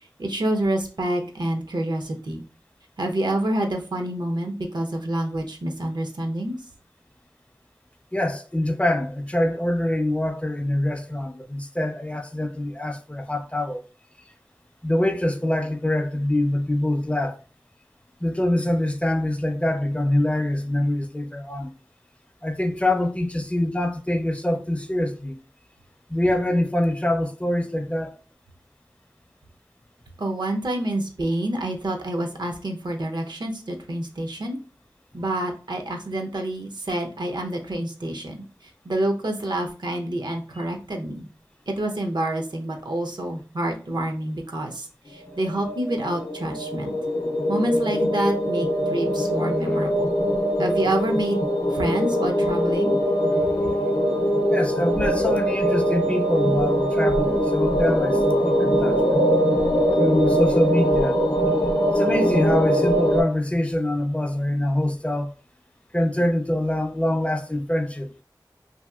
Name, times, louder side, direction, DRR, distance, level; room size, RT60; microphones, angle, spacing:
voice 1, 0.2-2.4 3.0-6.5 30.2-34.6 35.1-38.4 38.8-41.3 41.7-46.9 47.5-50.1 50.6-52.9, right 1 dB, 75° right, 0.6 m, -27 dB
voice 2, 8.1-13.8 14.8-17.4 18.2-21.7 22.4-25.4 26.1-28.2 49.6-49.8 53.4-53.9 54.5-59.2 60.0-61.2 61.9-65.3 65.9-68.1, left 1 dB, 15° left, 0.4 m, -24 dB
sound 1, 45.3-63.2, equal, 75° left, 0.5 m, -22 dB
2.8 x 2.7 x 2.3 m
wide cardioid pair, 60°, 8 cm